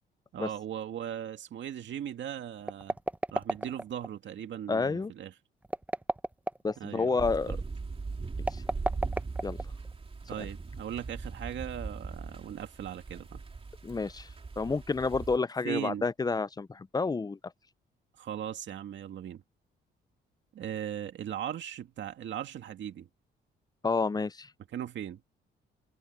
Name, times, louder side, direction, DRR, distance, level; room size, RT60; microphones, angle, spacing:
voice 1, 0.3-3.0 3.3-5.3 6.8-7.6 10.3-13.4 15.6-16.1 18.2-19.4 20.5-23.1 24.7-25.2, right 10 dB, 65° right, 2.2 m, -38 dB
sound 1, 2.6-4.1 5.6-6.8 8.4-9.9, right 1 dB, 10° right, 0.8 m, -32 dB
voice 2, 4.7-5.1 6.6-7.6 8.5-8.6 9.4-9.6 10.4-10.5 13.8-14.3 14.6-17.4 23.8-24.5, left 4 dB, 20° left, 0.6 m, -29 dB
sound 2, 7.2-15.4, right 4 dB, 30° right, 3.1 m, -39 dB
cardioid pair, 90°, 20 cm